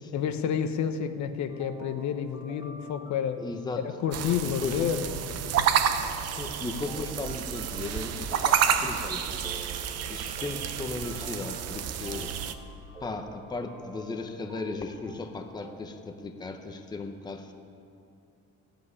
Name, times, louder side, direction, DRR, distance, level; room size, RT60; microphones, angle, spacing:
voice 1, 0.1-3.4 4.0-5.5, left 8 dB, 65° left, 8 dB, 0.9 m, -30 dB
sound 1, 1.5-15.9, right 3 dB, 10° right, 1.2 m, -49 dB
voice 2, 3.4-3.8 4.4-5.0 6.2-9.4 10.1-12.4 13.0-17.5, left 3 dB, 15° left, 5 dB, 0.8 m, -36 dB
sound 2, 4.1-12.6, right 8 dB, 55° right, 0.8 m, -29 dB
15.0 x 8.1 x 9.7 m, 2.6 s
cardioid pair, 170°, 30 cm